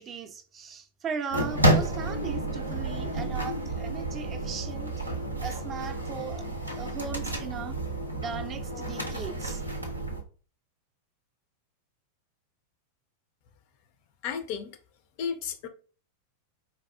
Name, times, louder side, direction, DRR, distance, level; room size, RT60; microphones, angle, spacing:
voice 1, 0.0-4.9 5.4-7.8 8.2-9.6, right 6 dB, 25° right, 0.4 m, -38 dB
sound 1, 1.3-10.2, right 1 dB, 85° right, 0.5 m, -30 dB
voice 2, 14.2-14.8 15.2-15.7, left 7 dB, 45° left, 0.4 m, -33 dB
4.1 x 2.3 x 2.3 m
figure-of-eight pair, 90°, 0 cm